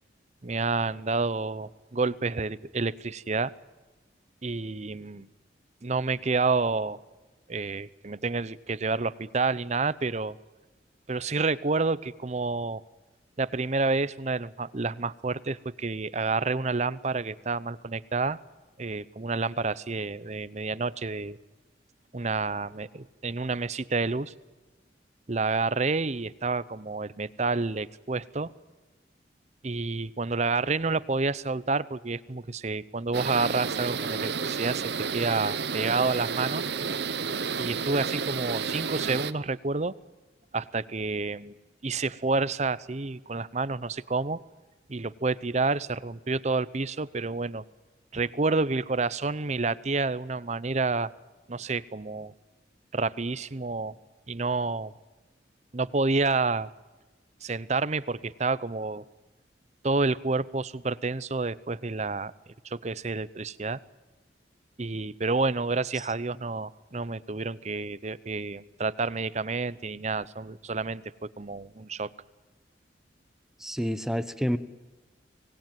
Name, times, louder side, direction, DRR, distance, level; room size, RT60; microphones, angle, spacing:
voice 1, 0.4-3.5 4.4-5.3 5.8-7.0 7.5-10.4 11.1-12.8 13.4-18.4 18.8-21.4 22.1-24.3 25.3-28.5 29.6-36.7 37.6-39.9 40.5-41.5 41.8-44.4 44.9-47.6 48.1-51.1 51.5-52.3 52.9-54.0 54.3-54.9 55.7-56.7 57.4-59.0 59.8-62.3 62.6-63.8 64.8-72.1, right 3 dB, 40° right, 17 dB, 0.7 m, -29 dB
sound 1, 33.1-39.3, right 5 dB, 65° right, 1.0 m, -31 dB
voice 2, 73.6-74.6, equal, 5° right, 11 dB, 1.0 m, -28 dB
25.0 x 19.0 x 9.2 m, 1.2 s
head